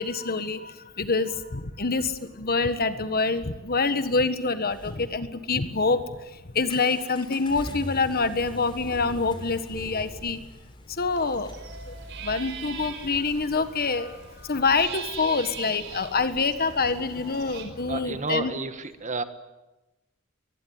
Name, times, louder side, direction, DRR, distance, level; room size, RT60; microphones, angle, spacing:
voice 1, 0.0-2.1 2.4-6.0 6.5-10.4 11.0-11.5 12.2-14.1 14.5-18.5, left 4 dB, 45° left, 11 dB, 1.5 m, -26 dB
sound 1, 4.4-18.3, left 1 dB, 25° left, 3.7 m, -44 dB
sound 2, 11.1-17.6, right 6 dB, 60° right, 4.9 m, -41 dB
voice 2, 17.9-19.2, right 3 dB, 35° right, 10 dB, 1.6 m, -31 dB
24.0 x 20.5 x 9.5 m, 1.0 s
head